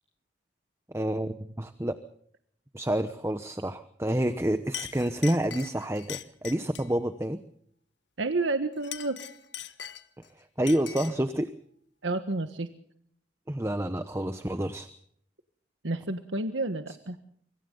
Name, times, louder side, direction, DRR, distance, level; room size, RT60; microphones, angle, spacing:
voice 1, 0.9-2.0 2.7-7.4 10.6-11.5 13.5-14.9, right 1 dB, 15° right, 10 dB, 1.0 m, -28 dB
Chink clink, 4.2-4.4 4.7-7.0 8.7-10.3 10.7-11.3, left 10 dB, 75° left, 1.4 m, -41 dB
voice 2, 8.2-9.2 12.0-12.7 15.8-17.2, right 2 dB, 90° right, 8 dB, 1.5 m, -30 dB
25.5 x 25.5 x 4.0 m, 0.63 s
head